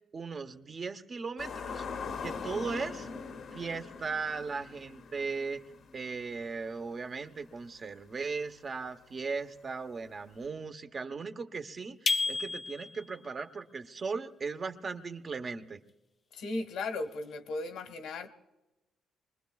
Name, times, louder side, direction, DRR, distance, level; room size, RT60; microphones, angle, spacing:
voice 1, 0.1-1.9 2.2-3.1 3.5-5.6 5.9-15.8, right 4 dB, 40° right, 8 dB, 0.9 m, -37 dB
sound 1, 1.4-6.8 7.2-7.3 10.4-10.5, left 5 dB, 65° left, 0.9 m, -42 dB
sound 2, 12.1-13.2, left 4 dB, 40° left, 0.6 m, -31 dB
voice 2, 16.3-18.3, left 2 dB, 80° left, 7 dB, 1.3 m, -36 dB
25.0 x 20.5 x 2.3 m, 1.0 s
cardioid pair, 90°, 0 cm